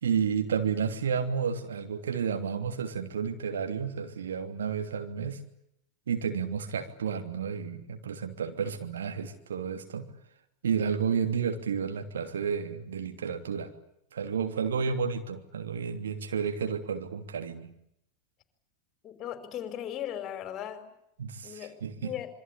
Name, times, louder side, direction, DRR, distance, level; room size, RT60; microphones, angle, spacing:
voice 1, 0.0-5.4 6.1-10.1 10.6-13.7 14.1-17.7 21.2-22.1, right 6 dB, 65° right, 5 dB, 3.0 m, -31 dB
voice 2, 19.0-20.8 21.4-21.7 22.0-22.3, left 11 dB, 30° left, 8 dB, 5.3 m, -37 dB
27.0 x 24.0 x 8.6 m, 0.76 s
figure-of-eight pair, 90°, 0 cm